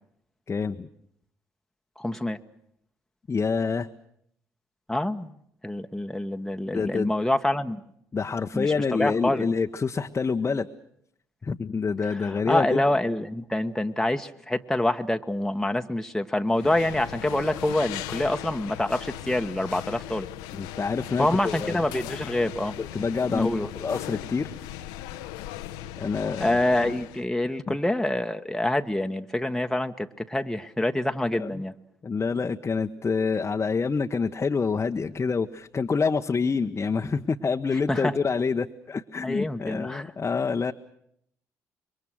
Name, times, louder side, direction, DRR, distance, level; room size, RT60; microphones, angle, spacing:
voice 1, 0.5-0.9 3.3-3.9 6.7-7.1 8.1-10.7 11.4-12.8 20.5-21.8 22.8-23.5 23.7-24.5 26.0-26.6 27.7-27.8 31.4-31.6 32.0-40.7, left 5 dB, 30° left, 4 dB, 1.1 m, -27 dB
voice 2, 2.0-2.4 4.9-5.3 5.6-7.8 8.5-8.7 9.0-9.5 12.1-20.3 21.2-22.7 23.3-23.7 26.4-31.7 37.9-38.1 39.2-40.1, left 1 dB, 5° left, 5 dB, 1.3 m, -26 dB
sound 1, 16.5-27.2, left 13 dB, 75° left, 0.9 m, -38 dB
27.0 x 23.5 x 6.3 m, 0.71 s
hypercardioid pair, 50°, 8 cm